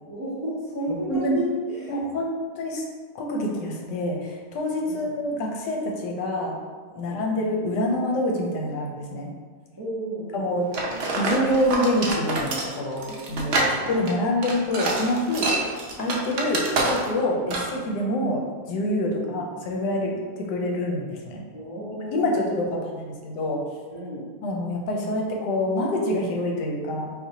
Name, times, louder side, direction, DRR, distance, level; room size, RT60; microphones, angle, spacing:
voice 1, 0.1-2.0 4.8-5.1 6.9-7.2 9.8-10.4 13.5-13.9 17.4-17.7 19.1-19.4 21.5-22.8 23.9-24.2, right 1 dB, 30° right, -9 dB, 0.4 m, -33 dB
voice 2, 1.1-1.4 1.9-2.8 3.1-6.6 7.0-9.3 10.3-21.4 22.1-23.6 24.4-27.1, left 1 dB, 85° left, 0 dB, 1.3 m, -26 dB
sound 1, 10.7-17.2 17.5-17.8, right 2 dB, 85° right, 0.5 m, -26 dB
4.2 x 2.7 x 2.7 m, 1.5 s
omnidirectional pair, 1.8 m